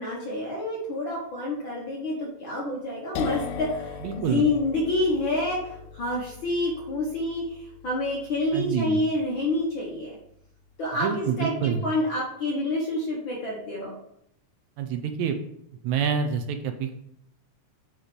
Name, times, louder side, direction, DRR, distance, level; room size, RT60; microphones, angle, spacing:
voice 1, 0.0-10.2 10.8-13.9, left 2 dB, 60° left, -4 dB, 1.3 m, -28 dB
sound 1, 3.1-10.7, left 7 dB, 85° left, 2.2 m, -40 dB
voice 2, 4.0-4.5 8.5-9.0 11.0-11.8 14.8-15.4 15.8-16.9, right 7 dB, 80° right, 7 dB, 1.9 m, -27 dB
8.8 x 3.2 x 5.0 m, 0.73 s
omnidirectional pair, 3.5 m